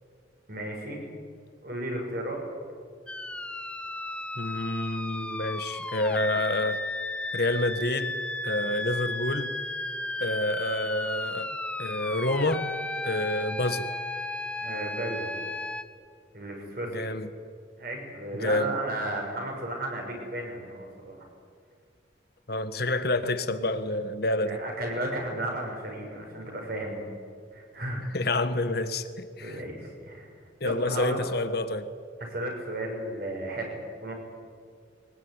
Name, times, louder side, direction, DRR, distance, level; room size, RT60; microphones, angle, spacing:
voice 1, 0.5-1.0 1.6-2.4 14.6-15.3 16.3-17.1 17.8-21.3 24.4-27.1 27.5-28.0 29.4-30.3 30.6-31.2 32.2-34.1, right 1 dB, 50° right, 6.4 m, -34 dB
sound 1, 3.1-15.8, left 1 dB, 5° left, 0.9 m, -34 dB
voice 2, 4.4-6.8 7.3-8.2 8.4-9.6 10.2-11.5 11.8-12.7 13.0-13.8 16.9-17.3 18.4-18.8 22.5-24.6 28.1-29.6 30.6-31.9, left 2 dB, 55° left, 1.4 m, -28 dB
22.5 x 20.0 x 9.7 m
head